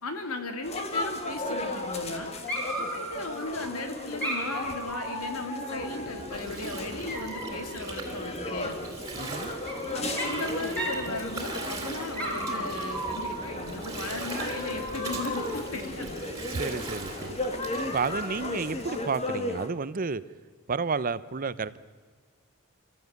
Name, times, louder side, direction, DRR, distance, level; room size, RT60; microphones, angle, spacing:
voice 1, 0.0-2.3 2.8-8.8 9.9-16.2, left 2 dB, 85° left, 6 dB, 2.7 m, -36 dB
sound 1, 0.6-19.7, left 2 dB, 30° left, 2.0 m, -36 dB
Dog, 1.3-2.2 2.5-3.7 4.2-6.3 7.1-7.7 9.1-9.8 10.2-10.5 10.8-11.0 11.4-11.8 12.1-13.7 14.3-15.6, right 1 dB, 5° left, 5.3 m, -35 dB
Gurgling, 5.8-19.0, right 2 dB, 15° right, 3.5 m, -39 dB
voice 2, 9.1-9.5 16.5-17.4 17.9-20.2 20.7-21.8, right 4 dB, 40° right, 16 dB, 0.6 m, -31 dB
27.5 x 14.5 x 9.4 m, 1.5 s
head